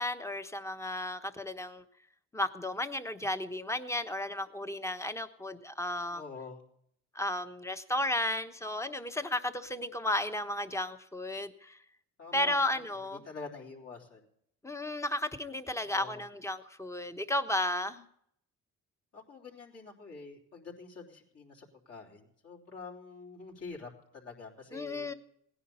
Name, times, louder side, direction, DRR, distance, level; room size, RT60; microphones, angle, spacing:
voice 1, 0.0-1.8 2.3-6.2 7.1-11.8 12.3-13.2 14.6-18.0 24.7-25.1, left 1 dB, 10° left, 10 dB, 1.1 m, -33 dB
voice 2, 6.1-6.6 12.2-12.8 13.2-14.2 15.8-16.2 19.1-25.1, left 4 dB, 55° left, -2 dB, 3.8 m, -46 dB
17.0 x 10.0 x 5.5 m, 0.69 s
cardioid pair, 90°, 30 cm